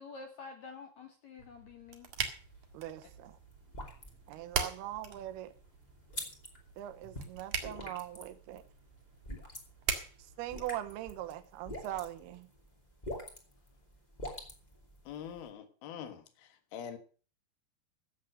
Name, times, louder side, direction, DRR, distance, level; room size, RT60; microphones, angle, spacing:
voice 1, 0.0-2.1, left 4 dB, 80° left, 1.6 m, -48 dB
sound 1, 1.4-11.3, right 7 dB, 55° right, 2.5 m, -42 dB
sound 2, 2.1-15.5, left 1 dB, 15° left, 1.4 m, -47 dB
voice 2, 2.7-3.4 4.3-5.5 6.8-8.6 10.4-12.5, right 13 dB, 75° right, 2.8 m, -41 dB
voice 3, 15.1-16.2 16.7-17.0, left 8 dB, 65° left, 3.1 m, -43 dB
15.5 x 7.5 x 6.5 m
omnidirectional pair, 5.3 m